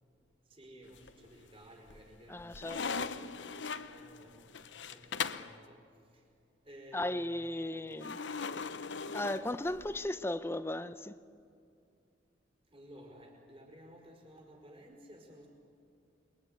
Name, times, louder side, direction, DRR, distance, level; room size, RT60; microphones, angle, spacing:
voice 1, 0.5-4.5 4.9-5.8 6.1-6.2 6.6-8.0 12.7-15.5, equal, 30° right, 4.9 m, -54 dB
sound 1, 0.9-1.5 1.9-5.6 8.0-10.1, left 5 dB, 80° left, 0.9 m, -39 dB
voice 2, 2.3-2.8 6.9-8.2 9.1-11.1, left 1 dB, 15° left, 0.7 m, -36 dB
28.0 x 22.5 x 9.3 m
head